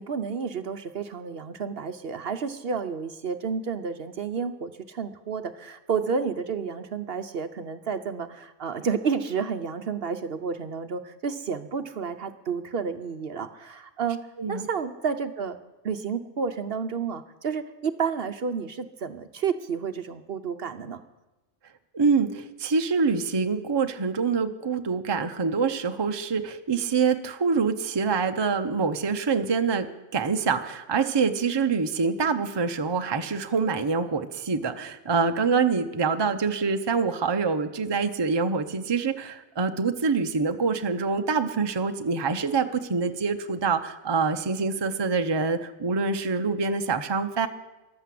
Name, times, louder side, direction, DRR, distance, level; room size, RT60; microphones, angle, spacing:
voice 1, 0.0-14.2 14.5-15.6 15.8-21.0, right 6 dB, 55° right, 9 dB, 0.9 m, -30 dB
voice 2, 14.4-14.7 21.9-29.9 30.1-47.5, right 5 dB, 25° right, 7 dB, 0.6 m, -25 dB
14.0 x 12.0 x 7.7 m, 1.1 s
omnidirectional pair, 1.3 m